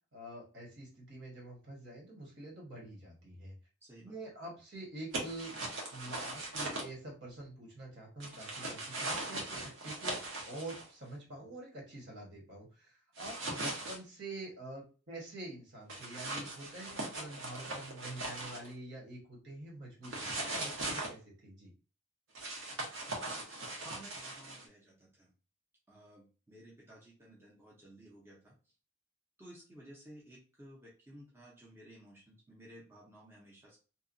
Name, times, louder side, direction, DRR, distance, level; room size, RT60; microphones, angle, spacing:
voice 1, 0.1-3.5 4.0-5.5 5.9-10.2 10.5-21.7, right 1 dB, 55° right, -2 dB, 1.1 m, -47 dB
voice 2, 3.8-4.2 23.8-25.3 25.9-28.5 29.4-33.8, right 1 dB, 10° right, -5 dB, 0.6 m, -55 dB
sound 1, 5.1-6.8 8.2-10.8 13.2-14.0 15.9-18.7 20.0-21.1 22.3-24.6, right 2 dB, 75° right, 0.8 m, -39 dB
2.8 x 2.2 x 2.5 m, 0.35 s
head